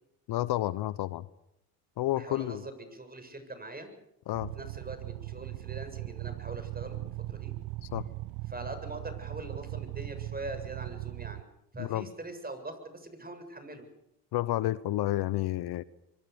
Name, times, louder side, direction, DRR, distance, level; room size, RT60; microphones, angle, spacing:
voice 1, 0.3-1.3 2.0-2.6 4.3-4.5 7.8-8.0 11.8-12.1 14.3-15.8, left 15 dB, 55° left, 18 dB, 1.0 m, -30 dB
voice 2, 2.2-3.9 4.5-7.5 8.5-11.5 11.7-13.9, right 2 dB, 20° right, 8 dB, 7.5 m, -42 dB
sound 1, 4.3-11.4, right 17 dB, 75° right, 1.0 m, -39 dB
25.0 x 24.5 x 7.0 m, 0.81 s
hypercardioid pair, 70°, 45 cm